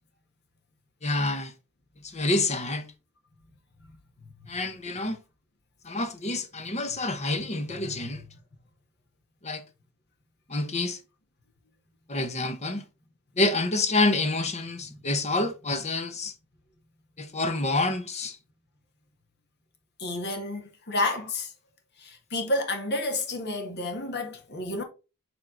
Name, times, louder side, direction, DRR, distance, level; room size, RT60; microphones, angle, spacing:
voice 1, 1.0-1.5 2.0-2.9 4.5-5.2 5.8-8.2 9.4-9.6 10.5-11.0 12.1-12.9 13.4-16.3 17.2-18.4, left 2 dB, 30° left, 1.0 m, -27 dB
voice 2, 7.7-8.2 14.9-15.1 20.0-21.5 22.0-24.8, left 2 dB, 50° left, 1.8 m, -31 dB
7.4 x 3.7 x 3.8 m
head